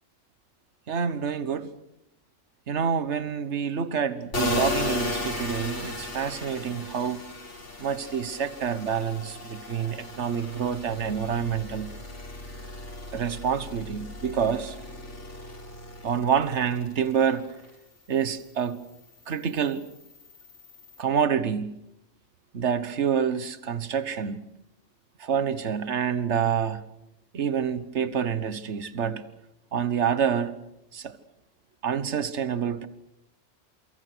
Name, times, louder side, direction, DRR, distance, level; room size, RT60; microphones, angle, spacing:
voice 1, 0.9-1.7 2.7-7.2 7.8-11.9 13.1-14.8 16.0-17.5 18.1-18.8 19.3-19.8 21.0-21.8 22.5-24.4 25.2-26.8 27.3-29.2 29.7-30.6 30.9-31.2 31.8-32.9, right 7 dB, 60° right, 1.5 m, -27 dB
sound 1, 4.3-17.7 18.1-21.0, left 2 dB, 65° left, 4.9 m, -36 dB
28.0 x 25.0 x 6.3 m
omnidirectional pair, 1.3 m